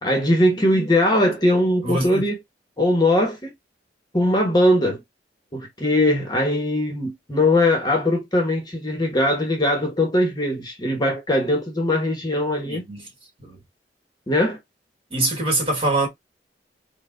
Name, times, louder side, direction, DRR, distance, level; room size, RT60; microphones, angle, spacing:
voice 1, 0.0-2.4 2.8-3.5 4.1-5.0 5.5-12.8 14.3-14.6, left 1 dB, 25° left, 1.1 m, -20 dB
voice 2, 1.8-2.3 12.7-13.1 13.4-13.6 15.1-16.1, right 2 dB, 35° right, 2.0 m, -24 dB
4.7 x 2.3 x 3.7 m
head